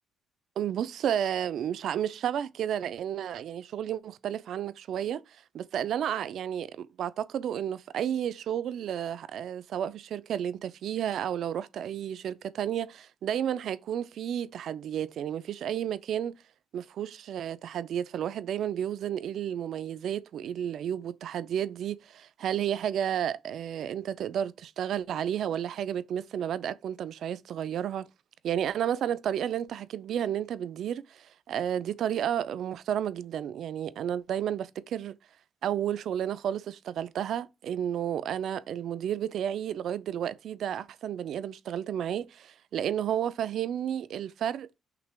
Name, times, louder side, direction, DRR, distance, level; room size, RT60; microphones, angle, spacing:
voice 1, 0.6-16.4 16.7-28.1 28.4-35.2 35.6-44.7, right 9 dB, 70° right, 0.3 m, -32 dB
5.8 x 3.2 x 2.2 m
cardioid pair, 90°, 0 cm